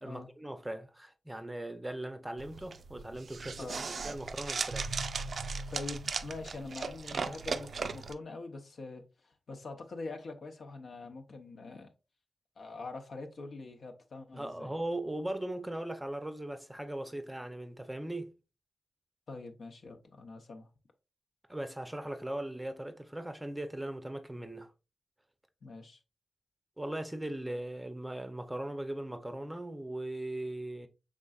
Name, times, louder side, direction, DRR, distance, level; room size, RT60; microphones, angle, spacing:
voice 1, 0.0-4.9 14.3-18.3 21.5-24.7 26.8-30.9, right 1 dB, 10° right, 0.5 m, -39 dB
sound 1, 2.4-8.1, right 4 dB, 65° right, 0.3 m, -37 dB
voice 2, 5.7-11.9 12.6-14.7 19.3-20.7 25.6-26.0, left 3 dB, 75° left, 0.8 m, -44 dB
5.3 x 3.7 x 2.4 m
wide cardioid pair, 95°, 0 cm